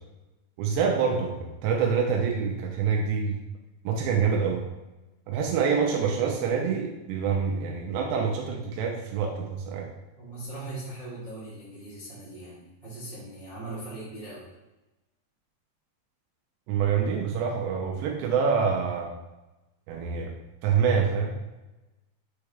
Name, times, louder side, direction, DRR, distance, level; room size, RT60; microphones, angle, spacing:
voice 1, 0.6-3.4 3.8-4.6 5.3-9.9 16.7-19.1 19.9-20.3 20.6-21.3, right 6 dB, 90° right, 0 dB, 2.9 m, -26 dB
voice 2, 10.2-14.5, right 2 dB, 40° right, -9 dB, 0.9 m, -40 dB
7.2 x 4.7 x 3.4 m, 1.0 s
omnidirectional pair, 5.0 m